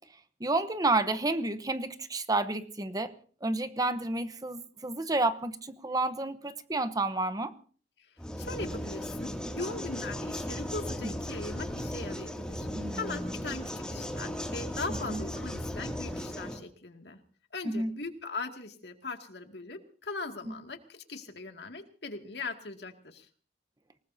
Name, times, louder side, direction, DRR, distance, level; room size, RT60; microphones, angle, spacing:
voice 1, 0.4-3.1 3.4-7.5 9.6-9.8 12.7-13.3 15.1-15.2 17.6-17.9, right 2 dB, 20° right, 11 dB, 0.9 m, -30 dB
sound 1, 8.2-16.6, equal, 5° left, 2.4 m, -36 dB
voice 2, 8.4-17.2 17.5-23.3, left 3 dB, 70° left, 5 dB, 2.3 m, -40 dB
27.0 x 19.5 x 2.7 m, 0.43 s
head